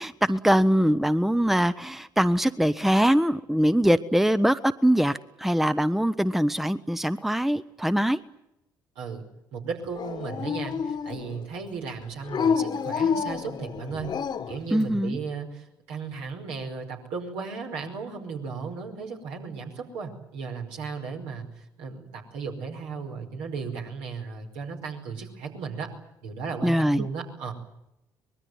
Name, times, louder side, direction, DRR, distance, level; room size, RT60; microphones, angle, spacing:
voice 1, 0.0-8.2 14.7-15.2 26.6-27.0, equal, ahead, 14 dB, 1.0 m, -23 dB
voice 2, 8.9-9.3 9.5-14.1 14.5-25.9 26.2-27.5, right 5 dB, 70° right, 2 dB, 5.1 m, -35 dB
Dog, 9.9-11.4 12.3-14.6, left 6 dB, 45° left, 1.6 m, -28 dB
24.5 x 21.5 x 9.5 m, 0.84 s
figure-of-eight pair, 50°, 10 cm